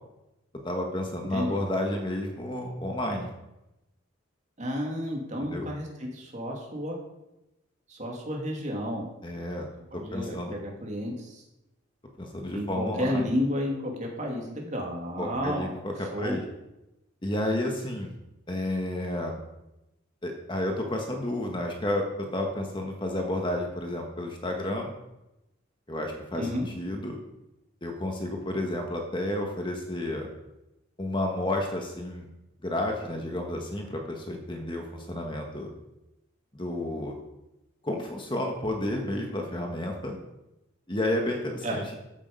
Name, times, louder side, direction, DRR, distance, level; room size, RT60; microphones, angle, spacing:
voice 1, 0.6-3.3 5.4-5.7 9.2-9.7 9.9-10.6 12.2-13.3 15.2-16.4 17.2-18.1 18.5-19.4 20.2-24.9 25.9-27.2 27.8-30.3 31.0-32.3 32.6-35.7 36.5-37.1 37.8-40.2 40.9-41.8, left 1 dB, 25° left, 2 dB, 1.6 m, -31 dB
voice 2, 4.6-7.0 7.9-9.1 9.9-11.4 12.5-15.7 16.1-16.4 26.3-26.7 41.6-41.8, equal, 35° right, 0 dB, 2.8 m, -31 dB
14.5 x 8.6 x 5.5 m, 0.93 s
head